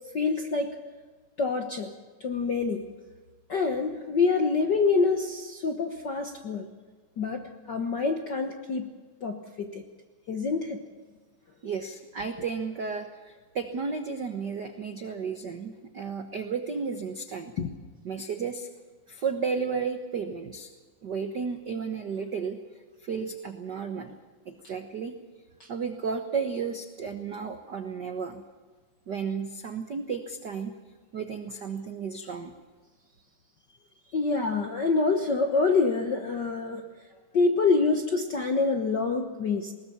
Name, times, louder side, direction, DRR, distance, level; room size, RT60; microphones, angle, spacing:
voice 1, 0.1-0.8 1.4-1.9 2.2-2.8 3.5-6.7 7.2-8.9 9.2-9.8 10.3-10.8 17.6-17.7 25.6-25.7 34.1-36.8 37.3-39.7, left 4 dB, 60° left, 5 dB, 1.1 m, -26 dB
voice 2, 11.6-17.5 18.0-18.7 19.1-20.7 21.0-22.6 23.0-24.1 24.5-25.1 25.7-28.4 29.1-30.7 31.1-32.5, right 5 dB, 75° right, 7 dB, 1.0 m, -33 dB
21.0 x 19.5 x 7.1 m, 1.4 s
omnidirectional pair, 3.8 m